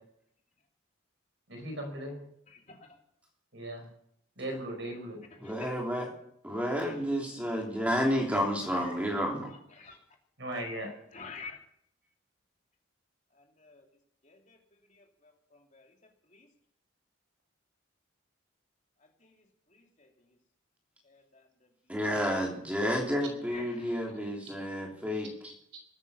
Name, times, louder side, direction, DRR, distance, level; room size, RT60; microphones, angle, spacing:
voice 1, 1.5-2.2 3.5-3.9 4.4-5.2 10.4-10.9, right 1 dB, 65° right, 3 dB, 5.0 m, -37 dB
voice 2, 2.5-3.0 5.3-5.8 6.6-7.0 7.7-7.9 8.7-10.0 11.1-11.6 13.3-13.8 14.2-15.9 16.3-16.5 19.0-19.4 19.7-20.1 21.0-22.0 23.5-24.3, left 4 dB, 35° left, 2 dB, 2.9 m, -51 dB
voice 3, 5.4-6.1 6.4-9.5 21.9-25.5, equal, 5° right, -1 dB, 3.1 m, -30 dB
20.5 x 9.8 x 7.0 m, 0.73 s
head